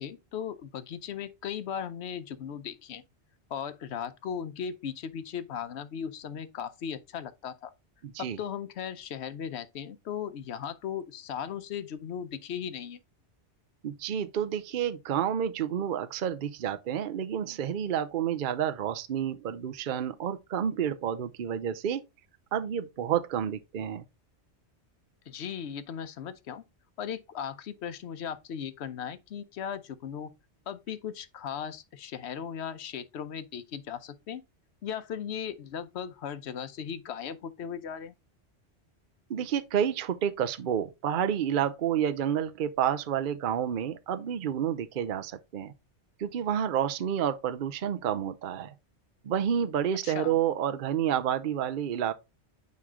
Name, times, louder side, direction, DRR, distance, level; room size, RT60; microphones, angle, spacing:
voice 1, 0.0-3.0 3.5-7.7 8.2-13.0 25.3-26.6 27.0-30.3 30.7-34.4 34.8-38.1 50.0-50.4, left 8 dB, 70° left, 1.0 m, -37 dB
voice 2, 8.0-8.4 13.8-22.0 22.5-24.0 39.3-45.7 46.2-48.7 49.2-52.1, right 9 dB, 55° right, 0.7 m, -29 dB
9.4 x 3.2 x 3.6 m
omnidirectional pair, 1.2 m